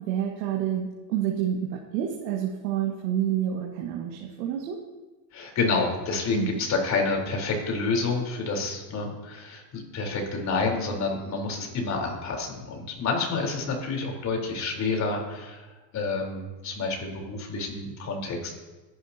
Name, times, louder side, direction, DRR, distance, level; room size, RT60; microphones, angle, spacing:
voice 1, 0.0-4.8 6.3-6.6, right 10 dB, 80° right, 0 dB, 2.1 m, -28 dB
voice 2, 5.3-15.6 15.9-18.5, left 3 dB, 35° left, 0 dB, 4.2 m, -29 dB
24.5 x 11.5 x 2.9 m, 1.2 s
supercardioid pair, 140°, 49 cm